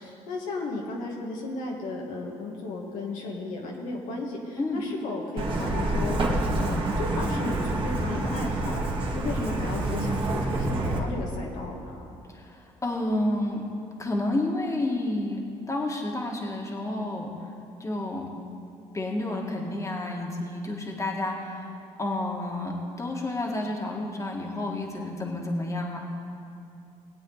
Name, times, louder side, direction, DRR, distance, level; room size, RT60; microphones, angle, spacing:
voice 1, 0.0-6.2 6.6-8.8 9.1-12.0, left 2 dB, 75° left, -2 dB, 1.9 m, -34 dB
Truck, 5.4-11.0, right 2 dB, 40° right, 2.0 m, -27 dB
voice 2, 12.3-13.6 14.0-15.4 15.7-17.5 17.8-18.3 18.9-26.0, left 1 dB, 25° left, 0 dB, 2.0 m, -30 dB
20.0 x 8.3 x 4.1 m, 2.6 s
supercardioid pair, 75°, 13 cm